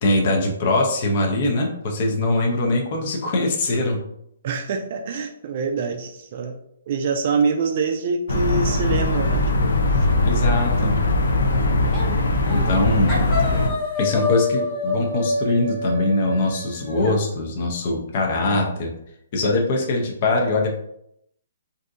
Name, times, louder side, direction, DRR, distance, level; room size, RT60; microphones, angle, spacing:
voice 1, 0.0-4.0 10.2-11.0 12.5-13.1 14.0-18.9 19.3-20.7, left 2 dB, 40° left, 1 dB, 0.6 m, -22 dB
voice 2, 4.4-6.6 6.9-10.1 13.0-13.7, right 5 dB, 40° right, 4 dB, 0.3 m, -26 dB
sound 1, 8.3-13.7, left 2 dB, 80° left, 0.5 m, -20 dB
sound 2, 11.9-12.2 12.5-12.8 13.1-17.2, left 3 dB, 15° left, 1.0 m, -27 dB
3.4 x 2.6 x 2.5 m, 0.73 s
hypercardioid pair, 160°, 0 cm